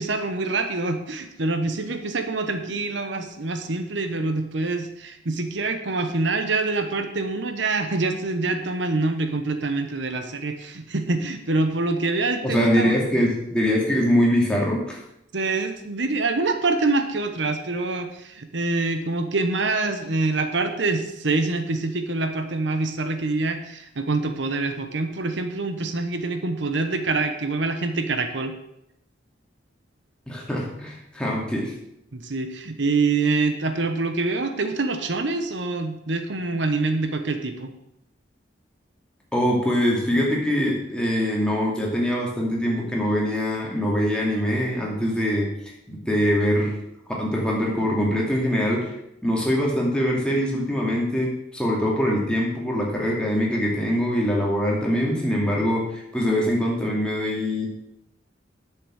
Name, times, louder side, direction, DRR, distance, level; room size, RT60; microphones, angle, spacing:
voice 1, 0.0-13.0 15.3-28.5 32.1-37.7, right 3 dB, 80° right, 7 dB, 1.0 m, -25 dB
voice 2, 12.4-15.0 30.3-31.8 39.3-45.5 45.9-46.8 47.2-48.9 49.2-57.7, equal, 5° left, -3 dB, 2.6 m, -23 dB
10.0 x 7.0 x 6.4 m, 0.81 s
head